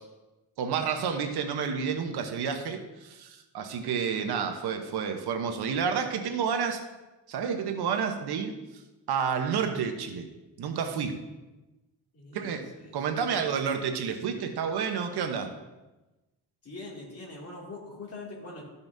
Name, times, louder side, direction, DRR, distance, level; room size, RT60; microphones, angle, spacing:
voice 1, 0.6-6.8 7.3-8.6 9.1-10.3 10.6-11.2 12.3-12.6 12.9-15.5, right 6 dB, 75° right, 6 dB, 1.0 m, -30 dB
voice 2, 12.1-13.0 13.4-13.5 16.6-18.6, left 2 dB, 40° left, -2 dB, 2.5 m, -43 dB
13.5 x 5.5 x 2.7 m, 1.1 s
cardioid pair, 100°, 39 cm